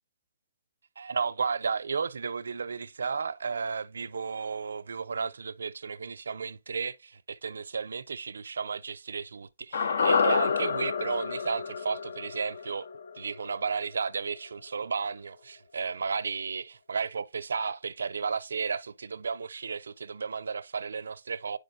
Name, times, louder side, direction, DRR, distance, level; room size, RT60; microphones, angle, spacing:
voice 1, 1.0-12.9 13.2-21.6, right 5 dB, 85° right, 0.5 m, -33 dB
sound 1, 9.7-14.0 14.3-14.4, left 6 dB, 50° left, 0.5 m, -29 dB
9.6 x 5.0 x 2.6 m
hypercardioid pair, 175°, 0 cm